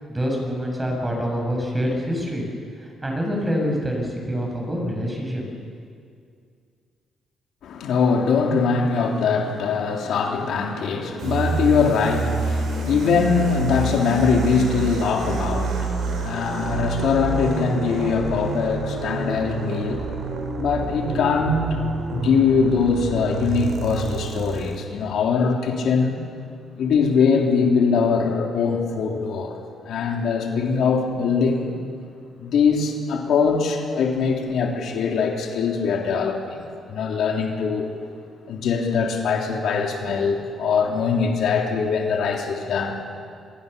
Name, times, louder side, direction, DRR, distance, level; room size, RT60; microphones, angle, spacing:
voice 1, 0.1-2.5 2.8-5.5, equal, 15° right, 1 dB, 7.6 m, -26 dB
voice 2, 7.6-20.2 20.6-21.8 22.1-26.2 26.8-29.6 29.8-31.7 32.4-37.9 38.5-43.0, left 5 dB, 75° left, 1 dB, 3.5 m, -22 dB
sound 1, 11.2-24.8, right 3 dB, 70° right, 5.2 m, -28 dB
26.5 x 22.5 x 7.0 m, 2.3 s
cardioid pair, 90°, 0 cm